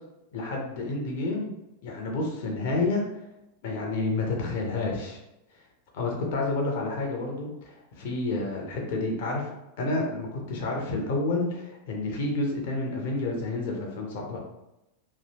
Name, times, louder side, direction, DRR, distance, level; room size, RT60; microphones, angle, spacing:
voice 1, 0.3-1.5 1.8-3.0 3.6-5.2 5.9-9.5 9.8-14.4, left 2 dB, 50° left, 0 dB, 0.6 m, -29 dB
2.7 x 2.1 x 2.7 m, 0.92 s
figure-of-eight pair, 90°, 0 cm